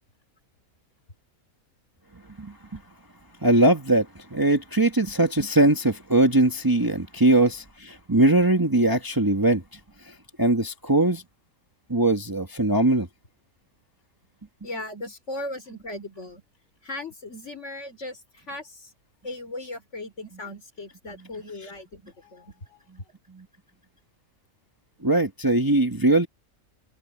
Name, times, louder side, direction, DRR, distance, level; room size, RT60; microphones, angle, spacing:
voice 1, 2.4-2.8 3.4-9.6 10.0-11.2 11.9-13.1 23.3-23.4 25.0-26.3, right 2 dB, 15° right, 1.4 m, -21 dB
voice 2, 14.6-16.4 16.8-18.9 19.2-22.8, left 2 dB, 50° left, 4.3 m, -37 dB
open air
omnidirectional pair, 1.5 m